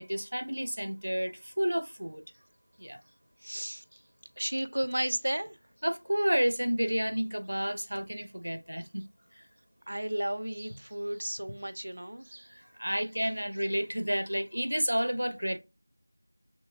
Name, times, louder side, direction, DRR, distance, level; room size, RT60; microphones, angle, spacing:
voice 1, 0.0-2.2 2.8-3.0 5.8-9.0 9.3-9.4 12.5-15.6, equal, 85° right, 0.7 m, -30 dB
voice 2, 3.4-3.8 4.4-5.6 9.9-12.5, right 1 dB, 45° right, 0.4 m, -33 dB
6.0 x 3.1 x 2.3 m
figure-of-eight pair, 180°, 0 cm